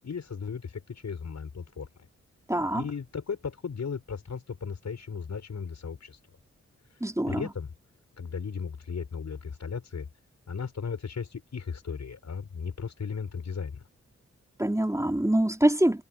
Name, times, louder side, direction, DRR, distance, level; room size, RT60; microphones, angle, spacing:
voice 1, 0.0-1.9 2.7-6.2 7.3-7.7 8.2-10.1 10.5-13.8, left 6 dB, 70° left, 6.5 m, -36 dB
voice 2, 2.5-2.8 7.0-7.4 14.6-16.0, right 1 dB, 10° right, 4.1 m, -24 dB
cardioid pair, 45°, 29 cm